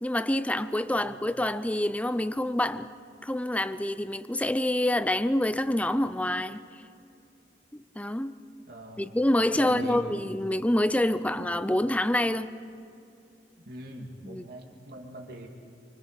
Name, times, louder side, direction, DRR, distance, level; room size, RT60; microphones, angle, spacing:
voice 1, 0.0-2.9 3.2-6.6 7.7-8.3 9.0-12.5 14.2-14.5, left 1 dB, 10° left, 0.6 m, -27 dB
voice 2, 8.7-9.2 9.5-10.0 13.7-15.5, right 1 dB, 60° right, 2.7 m, -42 dB
25.5 x 24.5 x 5.3 m
head